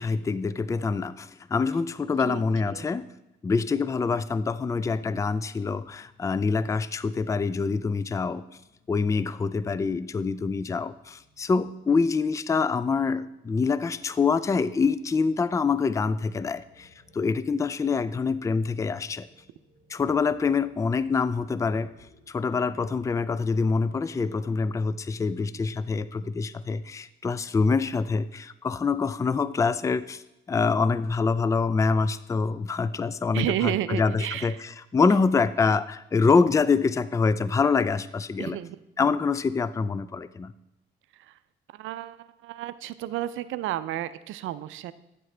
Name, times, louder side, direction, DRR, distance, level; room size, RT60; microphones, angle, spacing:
voice 1, 0.0-3.1 3.4-8.4 8.9-19.3 19.9-21.9 22.3-30.2 30.5-38.6 39.0-40.5, left 4 dB, 15° left, 16 dB, 0.3 m, -25 dB
sound 1, 10.4-23.2, left 2 dB, 80° left, 3.6 m, -62 dB
voice 2, 33.3-34.6 38.4-38.8 41.3-41.4 41.7-44.9, right 13 dB, 85° right, 14 dB, 0.5 m, -31 dB
9.5 x 7.6 x 3.3 m, 0.92 s
cardioid pair, 90°, 20 cm